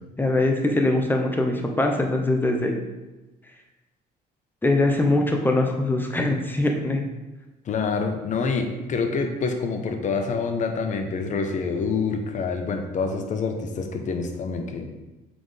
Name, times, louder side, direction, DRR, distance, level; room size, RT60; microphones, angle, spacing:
voice 1, 0.2-2.7 4.6-7.0, left 2 dB, 10° left, 2 dB, 0.9 m, -22 dB
voice 2, 7.7-15.0, left 4 dB, 45° left, 5 dB, 0.9 m, -27 dB
7.7 x 4.4 x 3.4 m, 1.1 s
cardioid pair, 110°, 17 cm